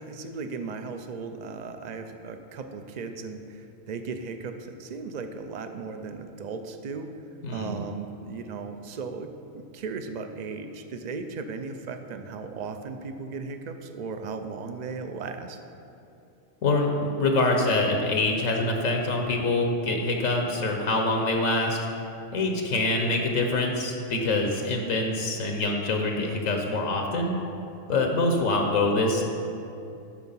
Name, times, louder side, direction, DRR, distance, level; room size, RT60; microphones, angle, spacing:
voice 1, 0.0-7.1 7.5-15.6, right 4 dB, 55° right, 7 dB, 0.5 m, -36 dB
voice 2, 7.4-7.8 16.6-21.8 22.3-27.3 27.9-29.2, left 2 dB, 85° left, 2 dB, 1.3 m, -25 dB
12.5 x 4.5 x 5.6 m, 2.7 s
omnidirectional pair, 1.3 m